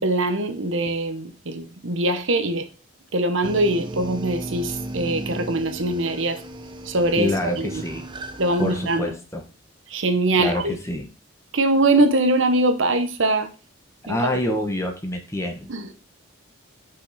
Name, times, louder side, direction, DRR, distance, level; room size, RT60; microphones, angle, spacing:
voice 1, 0.0-2.7 3.1-6.4 6.8-7.8 8.4-9.1 9.9-10.8 11.5-13.5 14.1-14.4 15.7-15.9, right 2 dB, 65° right, 1.0 m, -22 dB
sound 1, 3.4-9.0, right 1 dB, 20° right, 0.6 m, -35 dB
voice 2, 7.2-8.0 8.6-9.4 10.4-11.1 14.1-15.7, left 1 dB, 15° left, 1.0 m, -26 dB
5.9 x 5.4 x 4.1 m
head